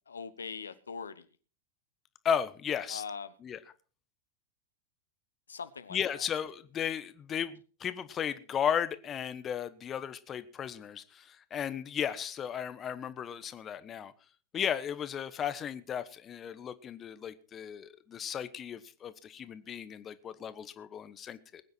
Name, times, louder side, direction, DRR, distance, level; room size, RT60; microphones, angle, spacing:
voice 1, 0.1-1.2 2.9-3.3 5.5-6.0, left 5 dB, 80° left, 0.9 m, -41 dB
voice 2, 2.2-3.0 3.4-3.6 5.9-14.1 14.5-21.6, left 8 dB, 25° left, 1.1 m, -35 dB
21.0 x 9.4 x 4.3 m
figure-of-eight pair, 95°, 0 cm